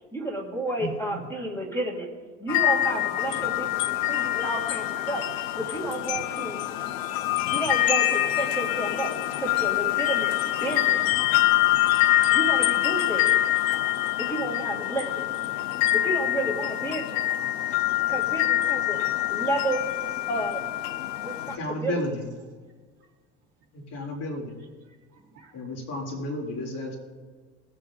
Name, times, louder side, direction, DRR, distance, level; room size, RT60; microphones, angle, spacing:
voice 1, 0.1-2.1 2.4-5.2 5.5-6.6 7.4-11.2 12.3-13.3 14.2-15.3 15.9-17.2 18.1-19.0 19.3-19.8 20.3-20.6 21.2-22.0, right 1 dB, 10° left, 0 dB, 2.5 m, -31 dB
sound 1, 2.5-21.6, left 14 dB, 90° left, 0.8 m, -25 dB
voice 2, 17.4-19.0 19.3-19.5 21.1-21.5 24.6-25.5, right 6 dB, 50° right, -1 dB, 3.8 m, -58 dB
voice 3, 21.6-22.2 23.7-24.5 25.5-26.9, left 1 dB, 55° left, -1 dB, 3.7 m, -32 dB
20.0 x 8.0 x 3.9 m, 1.4 s
cardioid pair, 125°, 30 cm